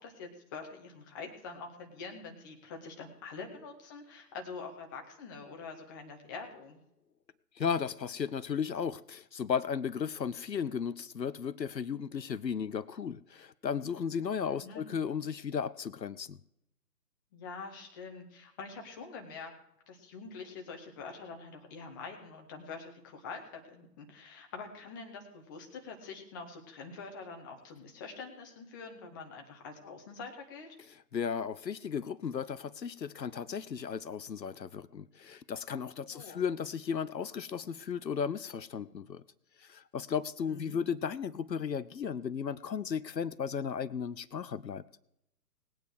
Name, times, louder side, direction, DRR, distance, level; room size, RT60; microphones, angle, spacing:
voice 1, 0.0-6.8 14.5-14.9 17.3-19.5 19.9-30.7 36.1-36.4 40.5-40.8, left 4 dB, 10° left, 2 dB, 1.0 m, -45 dB
voice 2, 7.6-16.4 31.1-39.2 39.6-44.8, left 7 dB, 80° left, 16 dB, 0.7 m, -35 dB
19.0 x 9.0 x 4.7 m, 0.81 s
figure-of-eight pair, 140°, 49 cm